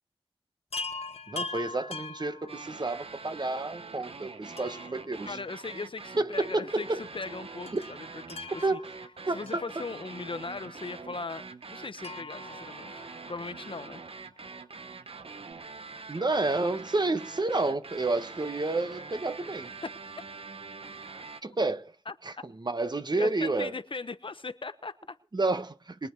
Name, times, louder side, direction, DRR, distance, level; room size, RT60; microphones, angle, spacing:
Chime, 0.7-3.1 4.6-6.1 6.4-6.5 7.7-10.4 12.0-13.6 15.2-15.3 15.5-15.6, left 3 dB, 85° left, 1.3 m, -42 dB
voice 1, 1.3-5.4 6.2-7.0 7.7-7.8 8.6-8.8 9.3-9.6 16.1-19.7 21.4-21.9 22.2-23.7 25.3-26.1, right 2 dB, 45° right, 1.3 m, -30 dB
sound 1, 2.5-21.4, right 4 dB, 65° right, 1.2 m, -44 dB
voice 2, 5.2-8.0 8.3-8.8 9.3-14.0 19.8-19.9 22.1-22.2 23.2-25.2, left 4 dB, 55° left, 1.0 m, -39 dB
22.5 x 8.5 x 4.7 m
cardioid pair, 45°, 10 cm